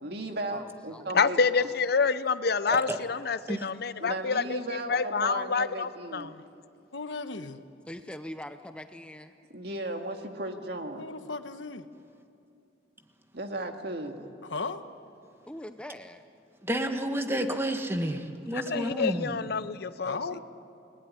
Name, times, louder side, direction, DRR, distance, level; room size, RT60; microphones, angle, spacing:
voice 1, 0.0-1.4 4.0-6.4 9.5-11.1 13.3-14.3, right 1 dB, 60° right, 2.2 m, -36 dB
voice 2, 0.5-1.7 7.9-9.3 15.5-16.2, left 1 dB, 5° left, 0.7 m, -43 dB
voice 3, 1.1-6.3 18.7-20.2, left 5 dB, 55° left, 0.7 m, -27 dB
voice 4, 2.7-3.0 3.5-3.7 16.6-19.4, right 1 dB, 15° right, 1.6 m, -30 dB
voice 5, 6.9-7.6 11.0-11.9 14.5-14.8 20.0-20.4, left 3 dB, 85° left, 1.3 m, -35 dB
29.0 x 19.5 x 10.0 m
head